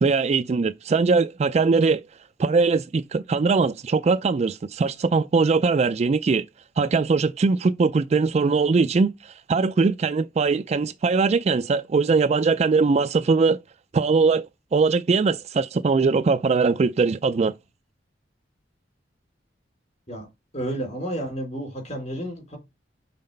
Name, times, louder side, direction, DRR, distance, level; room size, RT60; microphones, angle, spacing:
voice 1, 0.0-2.0 2.4-6.4 6.8-13.6 13.9-14.5 14.7-17.5, right 4 dB, 35° right, 0.3 m, -21 dB
voice 2, 20.5-22.6, right 1 dB, 40° left, 3.3 m, -31 dB
5.8 x 4.0 x 5.3 m
head